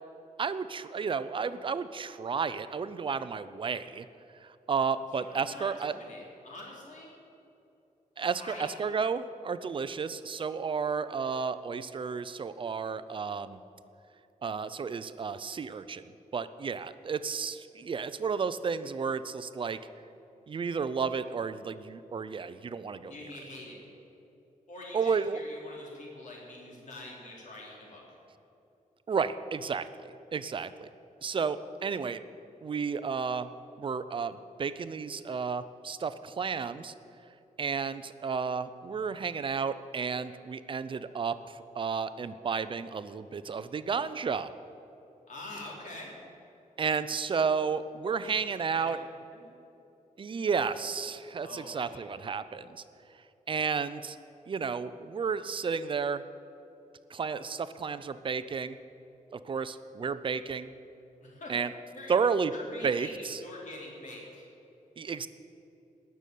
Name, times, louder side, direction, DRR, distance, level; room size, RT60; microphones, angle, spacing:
voice 1, 0.4-4.1 4.4-5.9 8.2-13.6 14.4-16.0 16.3-19.8 20.5-23.1 24.9-25.4 29.1-29.9 30.3-30.9 31.2-32.2 32.6-33.5 33.8-36.9 37.6-44.5 46.8-49.0 50.2-52.7 53.5-54.2 54.5-56.2 57.1-58.8 59.3-60.7 61.5-61.7 62.1-62.5 62.8-63.4 65.0-65.3, right 5 dB, 40° right, 13 dB, 0.5 m, -32 dB
voice 2, 5.1-7.1 8.4-8.7 23.1-23.8 24.7-28.0 45.3-46.1 48.2-48.3 48.8-48.9 49.3-49.5 51.4-52.0 61.2-61.5 61.9-62.1 62.5-64.5, left 1 dB, 65° left, -3 dB, 4.0 m, -45 dB
18.5 x 6.9 x 9.3 m, 2.8 s
wide cardioid pair, 175°, 14 cm